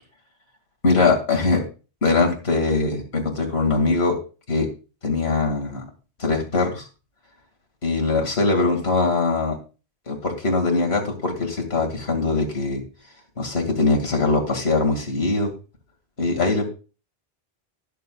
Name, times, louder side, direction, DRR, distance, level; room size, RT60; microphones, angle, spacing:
voice 1, 0.8-1.6 2.0-4.1 4.5-4.7 5.0-5.8 6.2-6.8 7.8-9.6 10.1-12.8 13.4-15.5 16.2-16.7, left 3 dB, 75° left, 2 dB, 2.5 m, -21 dB
19.5 x 6.8 x 2.3 m, 0.34 s
omnidirectional pair, 1.1 m